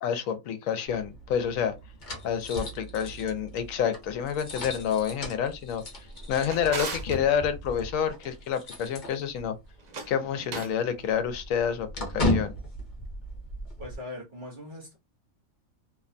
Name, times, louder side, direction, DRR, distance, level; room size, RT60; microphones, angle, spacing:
voice 1, 0.0-1.7 2.2-5.8 6.3-9.5 10.1-11.9 12.1-12.5, left 8 dB, 75° left, 0.9 m, -28 dB
sound 1, 0.9-9.7 10.0-10.1 10.5-14.0, left 1 dB, 40° left, 0.8 m, -36 dB
Drawer open or close, 6.0-7.2 9.8-10.8, right 4 dB, 85° right, 0.3 m, -38 dB
voice 2, 13.8-15.0, left 1 dB, 45° right, 0.8 m, -40 dB
2.8 x 2.1 x 2.5 m
omnidirectional pair, 1.5 m